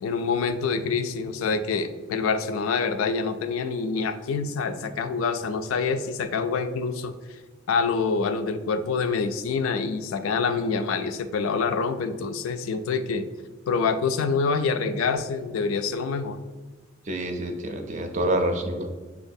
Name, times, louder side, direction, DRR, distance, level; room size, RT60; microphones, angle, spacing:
voice 1, 0.0-7.1 7.7-13.2 13.7-16.4, left 5 dB, 85° left, 9 dB, 0.3 m, -26 dB
voice 2, 17.1-18.9, right 1 dB, 35° right, 5 dB, 0.4 m, -27 dB
5.8 x 2.3 x 2.6 m, 1.3 s
head